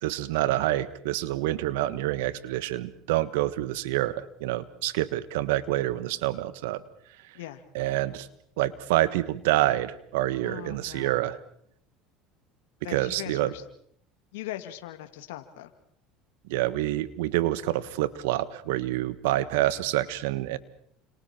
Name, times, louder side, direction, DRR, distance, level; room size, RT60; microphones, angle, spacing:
voice 1, 0.0-6.8 7.7-8.3 8.6-11.4 12.9-13.5 16.5-20.6, right 15 dB, 85° right, 15 dB, 1.4 m, -27 dB
voice 2, 10.4-11.2 12.8-13.6 14.3-15.7, left 14 dB, 85° left, 7 dB, 2.1 m, -40 dB
30.0 x 27.0 x 4.4 m, 0.65 s
supercardioid pair, 105°, 0 cm